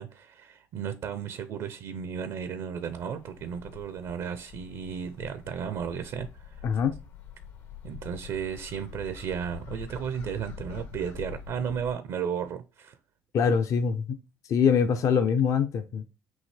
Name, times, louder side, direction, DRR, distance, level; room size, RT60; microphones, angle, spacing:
voice 1, 0.0-6.6 7.8-13.0, right 7 dB, 70° right, 0.5 m, -34 dB
sound 1, 2.9-11.9, left 7 dB, 80° left, 1.3 m, -45 dB
voice 2, 6.6-7.0 13.3-14.2 14.5-16.1, left 6 dB, 55° left, 0.5 m, -24 dB
5.5 x 2.8 x 3.2 m
supercardioid pair, 80°, 6 cm